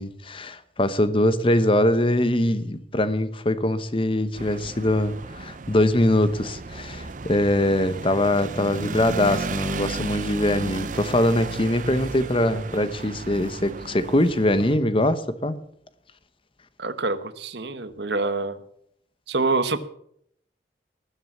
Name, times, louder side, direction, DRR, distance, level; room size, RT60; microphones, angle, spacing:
voice 1, 0.0-15.6, left 1 dB, 30° left, 1.0 m, -22 dB
sound 1, 4.3-14.8, right 3 dB, 45° right, 0.6 m, -34 dB
voice 2, 16.8-18.6 19.3-19.8, right 3 dB, 65° right, 1.2 m, -26 dB
19.5 x 7.7 x 7.2 m
head